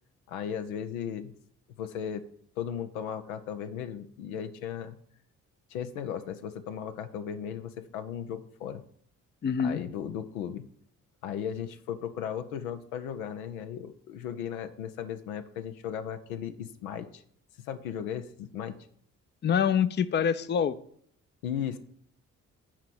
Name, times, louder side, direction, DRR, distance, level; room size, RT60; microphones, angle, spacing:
voice 1, 0.3-1.3 1.8-2.2 2.6-5.0 5.7-8.8 9.6-10.7 11.2-17.2 17.6-18.8 21.4-21.8, left 8 dB, 80° left, 9 dB, 0.7 m, -36 dB
voice 2, 9.4-9.8 19.4-20.7, left 7 dB, 25° left, 14 dB, 0.5 m, -25 dB
7.3 x 4.8 x 7.1 m, 0.62 s
figure-of-eight pair, 40°, 42 cm